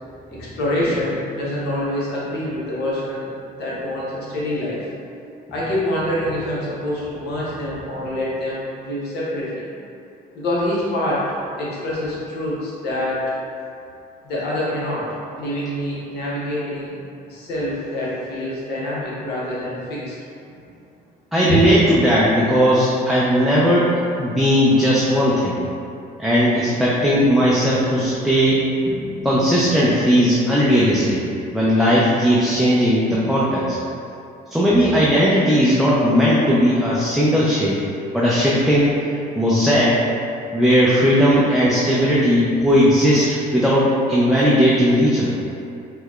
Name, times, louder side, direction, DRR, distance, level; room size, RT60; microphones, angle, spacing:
voice 1, 0.3-3.3 3.6-4.9 5.5-9.7 10.3-11.3 11.6-13.2 14.2-15.1 15.3-17.0 17.3-20.2 21.5-21.6, left 1 dB, 75° left, -7 dB, 1.0 m, -25 dB
voice 2, 21.3-25.6 26.2-31.2 31.5-33.8 34.5-37.8 38.1-38.9 39.4-40.0 40.5-45.4, equal, ahead, -8 dB, 0.4 m, -17 dB
4.4 x 2.2 x 2.3 m, 2.7 s
cardioid pair, 110°, 17 cm